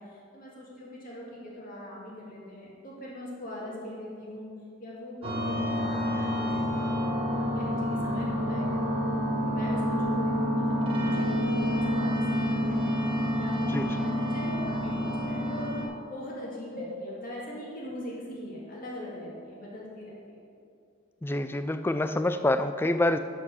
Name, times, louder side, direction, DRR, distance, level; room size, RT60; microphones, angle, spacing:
voice 1, 0.0-4.5 4.8-6.9 7.3-8.9 9.4-10.7 10.9-15.8 16.1-20.4, left 1 dB, 40° left, -5 dB, 2.1 m, -41 dB
sound 1, 5.2-15.9, equal, 25° right, 1.2 m, -28 dB
voice 2, 13.7-14.1 21.2-23.2, left 1 dB, 10° left, 9 dB, 0.3 m, -27 dB
11.5 x 4.8 x 6.3 m, 2.4 s
head